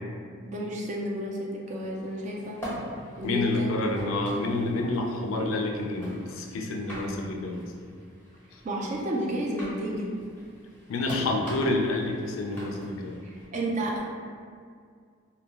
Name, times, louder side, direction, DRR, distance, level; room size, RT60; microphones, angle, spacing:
voice 1, 0.4-2.6 3.2-3.7 8.6-10.1 13.2-14.0, right 1 dB, 35° right, -2 dB, 0.3 m, -31 dB
sound 1, 1.8-13.5, equal, 10° left, 0.7 m, -44 dB
voice 2, 2.7-7.6 8.5-8.6 10.9-13.2, left 2 dB, 80° left, 1 dB, 0.3 m, -29 dB
2.2 x 2.1 x 3.2 m, 2.1 s
head